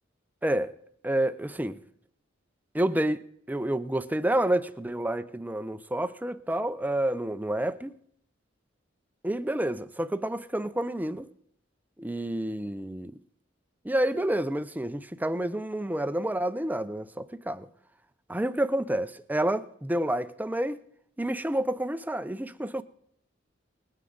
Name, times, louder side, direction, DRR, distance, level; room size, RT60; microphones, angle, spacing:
voice 1, 0.4-0.7 1.0-1.8 2.7-7.9 9.2-11.3 12.0-13.1 13.8-17.7 18.3-20.8 21.2-22.8, right 1 dB, 10° right, 0.5 m, -29 dB
20.5 x 9.4 x 3.9 m
head